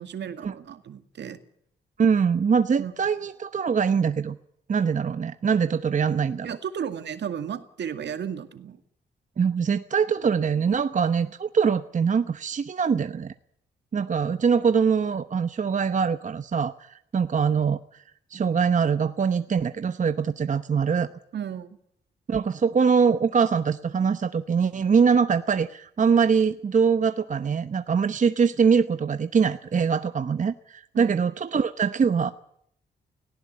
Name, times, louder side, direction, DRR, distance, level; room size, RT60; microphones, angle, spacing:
voice 1, 0.0-1.4 2.8-2.9 6.4-8.8 21.3-21.8 30.9-31.2, right 8 dB, 70° right, 9 dB, 2.1 m, -34 dB
voice 2, 2.0-4.4 4.7-6.5 9.4-13.3 13.9-18.0 18.3-21.1 22.3-32.3, right 6 dB, 40° right, 11 dB, 0.9 m, -23 dB
18.5 x 17.0 x 9.6 m, 0.70 s
cardioid pair, 80°, 19 cm